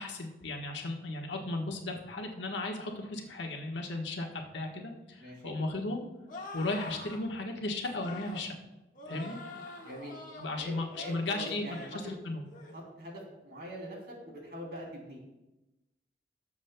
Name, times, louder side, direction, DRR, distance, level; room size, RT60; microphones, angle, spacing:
voice 1, 0.0-6.0 6.5-8.5 9.1-9.4 10.4-12.4, left 2 dB, 85° left, 2 dB, 1.4 m, -35 dB
voice 2, 5.2-5.6 9.1-9.3 9.8-10.2 10.6-11.9 12.7-15.2, equal, 55° right, -2 dB, 3.2 m, -43 dB
sound 1, 6.3-7.2 7.9-8.5 8.9-10.5 10.9-11.2 11.6-12.0 12.4-12.8, left 2 dB, 45° left, 1.6 m, -45 dB
19.0 x 7.2 x 2.3 m, 0.98 s
head